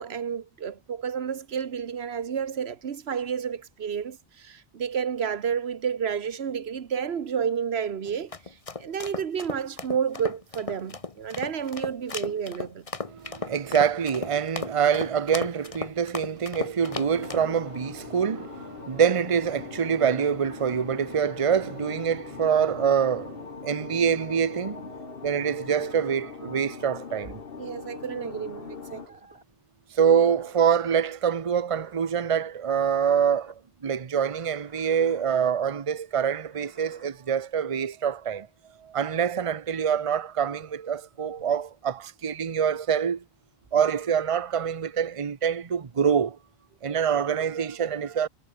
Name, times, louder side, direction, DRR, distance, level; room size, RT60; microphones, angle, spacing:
voice 1, 0.0-8.3 8.8-12.9 27.6-29.2, right 7 dB, 90° right, 1.3 m, -30 dB
sound 1, 8.0-17.5, left 3 dB, 35° left, 1.4 m, -35 dB
voice 2, 13.1-27.4 29.9-38.5 38.8-43.2 43.7-46.4 46.8-48.3, right 7 dB, 35° right, 0.8 m, -25 dB
sound 2, 16.8-29.1, left 5 dB, 65° left, 1.5 m, -41 dB
sound 3, 27.8-29.5 30.2-31.1 31.7-32.1 32.6-33.6 34.3-35.3 36.3-37.1, right 2 dB, 75° right, 3.7 m, -52 dB
omnidirectional pair, 1.0 m